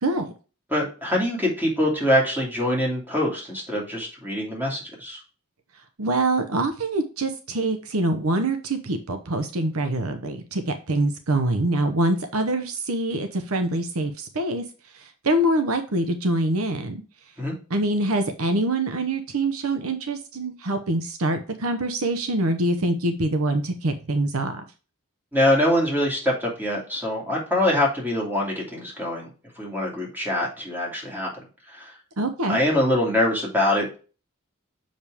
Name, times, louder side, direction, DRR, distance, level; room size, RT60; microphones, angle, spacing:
voice 1, 0.0-0.3 6.0-14.6 14.9-17.0 17.7-24.6 32.2-32.6, right 1 dB, 75° right, 7 dB, 0.9 m, -25 dB
voice 2, 0.7-5.2 17.4-17.6 25.3-29.3 29.6-31.3 31.7-31.9 32.5-34.0, left 1 dB, 10° right, -3 dB, 2.7 m, -24 dB
6.8 x 5.2 x 3.5 m, 0.35 s
head